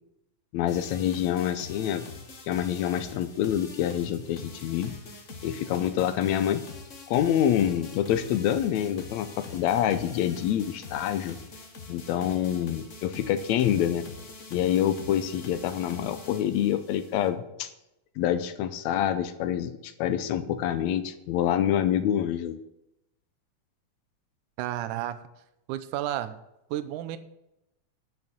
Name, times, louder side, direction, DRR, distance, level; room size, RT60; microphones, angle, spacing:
voice 1, 0.5-2.1 2.5-5.0 5.4-6.6 7.1-11.4 11.9-14.0 14.5-17.7 18.2-22.6, left 10 dB, 75° left, 11 dB, 1.8 m, -26 dB
sound 1, 0.7-17.3, left 3 dB, 60° left, 0.7 m, -44 dB
voice 2, 24.6-25.2 25.7-26.4 26.7-27.2, right 12 dB, 80° right, 12 dB, 2.2 m, -31 dB
11.0 x 6.1 x 7.2 m, 0.87 s
omnidirectional pair, 3.7 m